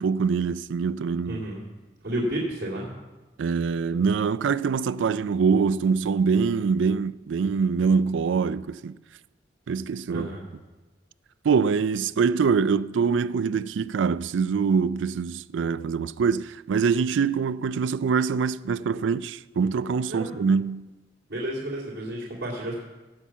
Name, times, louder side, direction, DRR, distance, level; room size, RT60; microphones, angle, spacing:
voice 1, 0.0-1.5 3.4-9.0 9.7-10.3 11.4-20.9, right 5 dB, 85° right, 0.4 m, -24 dB
voice 2, 1.2-1.6 2.0-2.9 10.1-10.4 20.1-20.4 21.3-22.8, right 1 dB, 55° right, 2.5 m, -31 dB
17.0 x 5.8 x 7.3 m
head